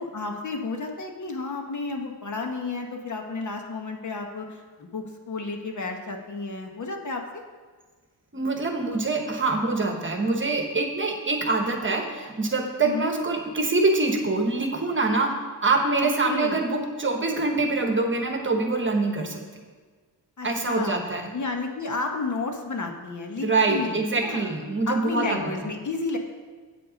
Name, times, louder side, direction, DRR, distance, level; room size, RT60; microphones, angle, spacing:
voice 1, 0.0-7.4 12.8-13.1 16.0-16.6 20.4-21.0 21.3-24.6 24.9-26.2, left 3 dB, 45° left, 3 dB, 1.1 m, -32 dB
voice 2, 8.3-15.3 15.6-19.4 20.4-21.2 23.4-25.4, right 3 dB, 30° right, 3 dB, 1.1 m, -25 dB
8.2 x 7.7 x 5.1 m, 1.5 s
wide cardioid pair, 135°, 40 cm